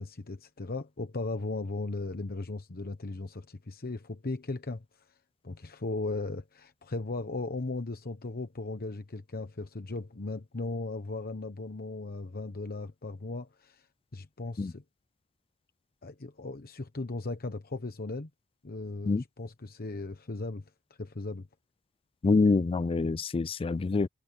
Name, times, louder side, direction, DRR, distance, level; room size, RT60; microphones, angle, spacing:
voice 1, 0.0-4.8 5.4-13.9 14.1-14.8 16.0-18.3 18.6-20.6 21.0-21.5, left 2 dB, 45° left, 1.0 m, -37 dB
voice 2, 22.2-24.1, left 3 dB, 25° left, 0.3 m, -26 dB
head